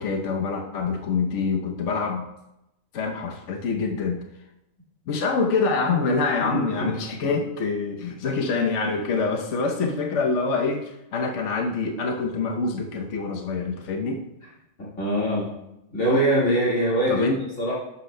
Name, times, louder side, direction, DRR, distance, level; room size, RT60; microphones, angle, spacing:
voice 1, 0.0-2.3 2.9-4.2 5.1-14.2 17.1-17.4, left 4 dB, 65° left, 2 dB, 1.1 m, -26 dB
voice 2, 6.4-6.9 7.2-7.3 14.8-15.5 15.9-17.7, equal, 80° left, -7 dB, 2.4 m, -23 dB
11.5 x 8.0 x 2.2 m, 0.88 s
omnidirectional pair, 1.3 m